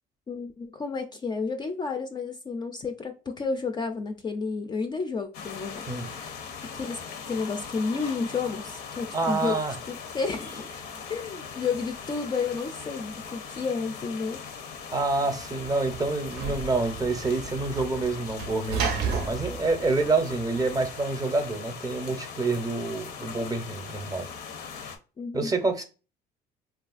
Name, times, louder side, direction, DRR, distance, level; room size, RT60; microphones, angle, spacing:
voice 1, 0.3-6.3 6.7-7.0 7.3-9.6 9.9-10.8 11.1-14.4 25.2-25.5, left 4 dB, 25° left, 0.3 m, -31 dB
sound 1, 5.3-25.0, left 6 dB, 75° left, 0.6 m, -40 dB
voice 2, 9.1-9.7 14.9-24.3 25.3-25.8, right 3 dB, 20° right, 0.6 m, -27 dB
Sliding door / Slam, 15.0-20.9, right 6 dB, 85° right, 0.5 m, -34 dB
3.1 x 2.4 x 2.3 m
cardioid pair, 110°, 17 cm